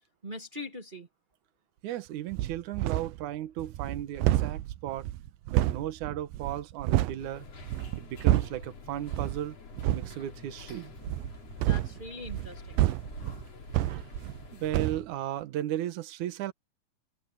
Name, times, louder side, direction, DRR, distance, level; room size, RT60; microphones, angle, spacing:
voice 1, 0.2-1.1 11.6-12.9, left 1 dB, 25° right, 1.1 m, -42 dB
voice 2, 1.8-5.1 5.5-7.4 8.0-9.6 9.9-10.9 13.9-14.1 14.5-16.5, right 12 dB, 65° right, 2.6 m, -35 dB
sound 1, 2.3-3.2 3.6-7.2 7.6-8.7 9.1-9.4 9.7-10.1 11.0-14.5 14.7-15.0, right 15 dB, 85° right, 2.5 m, -29 dB
sound 2, 7.2-15.0, left 4 dB, 50° left, 4.1 m, -48 dB
open air
omnidirectional pair, 3.9 m